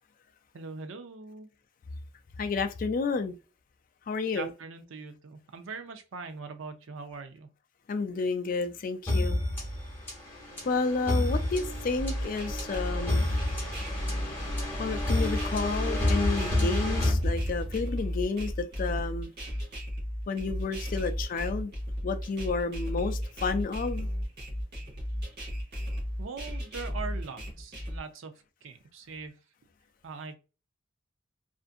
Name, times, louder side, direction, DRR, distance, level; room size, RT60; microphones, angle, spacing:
voice 1, 0.5-1.5 4.3-7.5 26.2-28.3 28.6-29.4 30.0-30.4, right 4 dB, 70° right, 0.5 m, -41 dB
voice 2, 2.4-3.4 4.1-4.5 7.9-9.4 10.7-13.3 14.8-19.3 20.3-21.7 22.0-24.1, left 4 dB, 40° left, 0.3 m, -31 dB
sound 1, 9.1-17.9, left 1 dB, 10° left, 1.1 m, -30 dB
sound 2, 12.0-28.0, equal, 50° right, 1.0 m, -34 dB
2.5 x 2.5 x 2.5 m
head